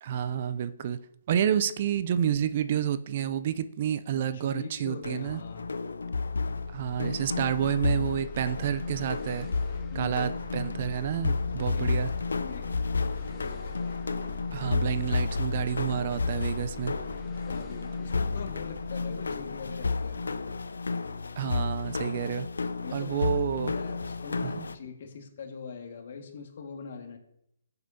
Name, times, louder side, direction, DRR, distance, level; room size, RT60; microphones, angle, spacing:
voice 1, 0.0-1.0 1.3-5.4 6.7-9.5 9.9-12.1 14.5-16.9 21.4-22.5 22.9-23.7 24.4-24.7, right 9 dB, 45° right, 13 dB, 0.6 m, -29 dB
voice 2, 4.3-5.8 9.9-10.2 11.6-12.7 13.5-13.6 17.2-20.2 22.8-23.4 23.7-27.2, left 5 dB, 55° left, 3 dB, 1.9 m, -42 dB
sound 1, 5.0-24.7, left 4 dB, 80° left, 0.6 m, -32 dB
sound 2, 6.2-21.6, left 3 dB, 20° left, 1.4 m, -47 dB
15.0 x 8.0 x 2.8 m, 0.76 s
hypercardioid pair, 140°, 0 cm